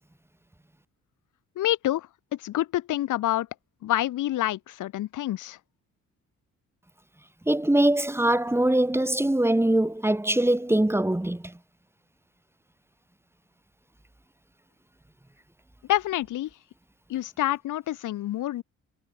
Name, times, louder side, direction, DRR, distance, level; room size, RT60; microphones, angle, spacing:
voice 1, 1.6-2.1 2.4-3.5 3.8-5.6 15.9-16.5 17.1-18.6, left 14 dB, 85° left, 6.2 m, -27 dB
voice 2, 7.5-11.5, right 1 dB, 10° right, 5.1 m, -22 dB
cardioid pair, 90°, 30 cm